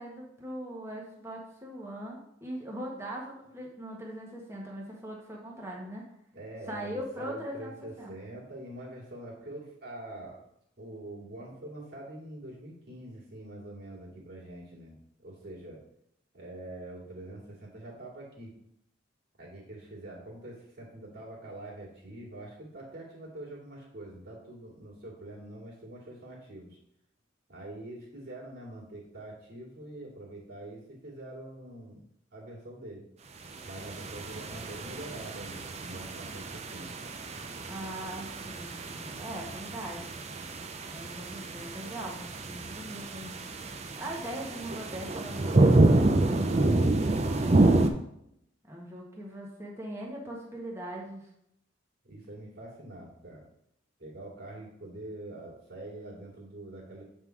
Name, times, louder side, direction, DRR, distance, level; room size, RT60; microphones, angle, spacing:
voice 1, 0.0-6.1 6.7-8.2 37.7-40.2 40.9-43.4 43.9-46.5 48.6-51.3, right 1 dB, 15° right, -2 dB, 1.3 m, -40 dB
voice 2, 6.3-10.4 10.8-15.8 16.3-18.5 19.4-26.8 27.5-32.0 32.3-33.0 33.7-36.9 46.4-47.3 52.0-53.4 54.0-57.0, right 1 dB, 50° right, -3 dB, 2.4 m, -45 dB
sound 1, 33.6-47.9, right 2 dB, 30° right, 0.5 m, -28 dB
7.9 x 3.7 x 4.6 m, 0.75 s
head